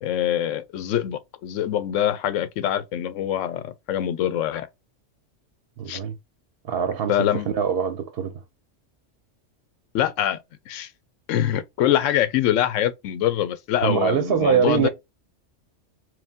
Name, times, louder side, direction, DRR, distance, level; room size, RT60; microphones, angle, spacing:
voice 1, 0.0-4.7 5.9-6.0 7.1-7.5 9.9-10.4 10.7-10.9 11.3-14.9, left 11 dB, 85° left, 0.9 m, -24 dB
voice 2, 5.8-6.1 6.6-8.4 13.8-14.9, right 8 dB, 60° right, 0.8 m, -23 dB
4.8 x 2.2 x 3.5 m
omnidirectional pair, 1.3 m